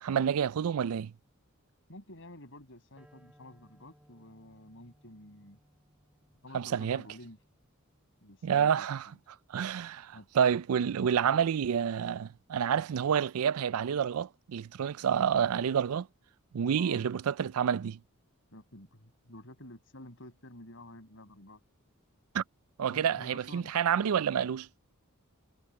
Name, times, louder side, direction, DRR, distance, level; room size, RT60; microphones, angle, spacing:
voice 1, 0.0-1.1 6.5-7.0 8.4-9.0 9.5-16.1 16.5-18.0 22.3-22.4 22.8-24.7, right 8 dB, 80° right, 0.4 m, -28 dB
voice 2, 1.9-5.6 6.4-7.4 8.2-9.2 10.1-10.3 16.7-17.0 18.5-21.6 22.9-23.7, left 1 dB, 65° left, 6.7 m, -50 dB
sound 1, 3.0-9.3, equal, 5° right, 6.0 m, -65 dB
head